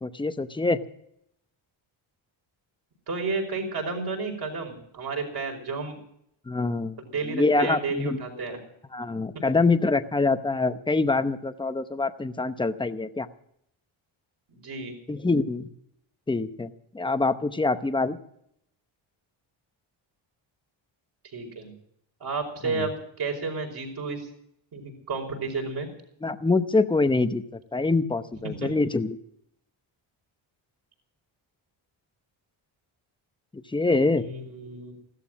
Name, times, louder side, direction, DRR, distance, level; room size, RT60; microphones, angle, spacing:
voice 1, 0.0-0.8 6.5-7.0 7.3-8.2 8.9-13.3 15.1-15.7 16.3-18.2 22.7-22.8 26.2-27.4 27.7-29.2 33.5-34.3, left 3 dB, 10° left, 10 dB, 0.8 m, -25 dB
voice 2, 3.1-5.9 7.0-8.6 14.5-15.0 21.3-21.7 22.2-24.3 24.7-25.9 28.4-28.8 34.2-34.9, right 4 dB, 50° right, 2 dB, 5.3 m, -32 dB
15.5 x 13.0 x 6.3 m, 0.72 s
cardioid pair, 135°, 49 cm